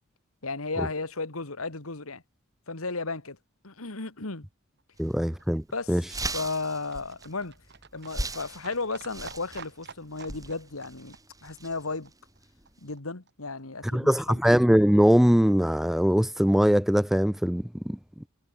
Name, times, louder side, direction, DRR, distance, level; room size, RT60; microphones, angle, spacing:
voice 1, 0.4-2.2 2.7-3.4 3.6-4.5 5.7-6.0 6.3-7.6 7.9-11.2 11.4-12.1 12.8-14.4, left 3 dB, 75° left, 2.2 m, -34 dB
Livestock farm animals working animals, 4.8-13.0 13.3-13.4 13.6-13.7 13.9-14.0 14.2-14.3 14.5-14.6 14.8-14.9 15.1-15.2 15.5-15.6, right 5 dB, 55° right, 3.9 m, -51 dB
voice 2, 5.0-6.0 13.9-18.3, equal, ahead, 0.3 m, -22 dB
sound 1, 5.0-5.1 5.5-5.6 5.9-12.9, right 2 dB, 15° right, 5.9 m, -39 dB
head